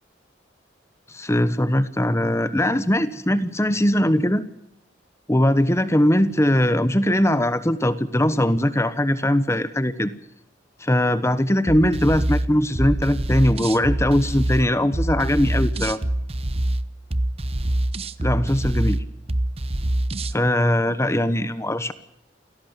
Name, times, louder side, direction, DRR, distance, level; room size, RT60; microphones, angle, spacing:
voice 1, 1.1-4.4 5.3-10.1 10.8-16.0 18.2-19.0 20.3-21.9, left 1 dB, 15° left, 13 dB, 1.1 m, -20 dB
sound 1, 11.7-20.4, right 1 dB, 30° right, 1.0 m, -25 dB
28.5 x 17.5 x 7.4 m, 0.79 s
head